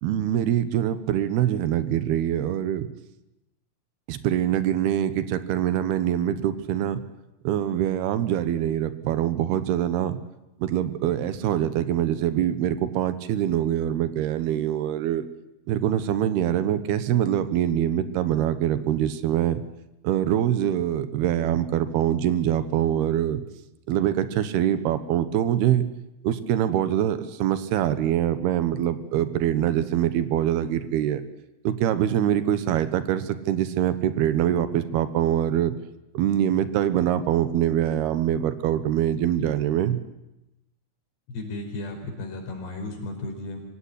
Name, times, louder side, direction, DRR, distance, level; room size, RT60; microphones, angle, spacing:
voice 1, 0.0-2.9 4.1-7.0 7.4-10.2 10.6-15.2 15.7-19.6 20.0-23.4 23.9-25.8 26.2-31.2 31.6-35.7 36.1-40.0, right 11 dB, 80° right, 12 dB, 3.1 m, -24 dB
voice 2, 41.3-43.6, left 2 dB, 85° left, 3 dB, 6.8 m, -34 dB
24.5 x 17.0 x 9.9 m, 0.93 s
omnidirectional pair, 4.7 m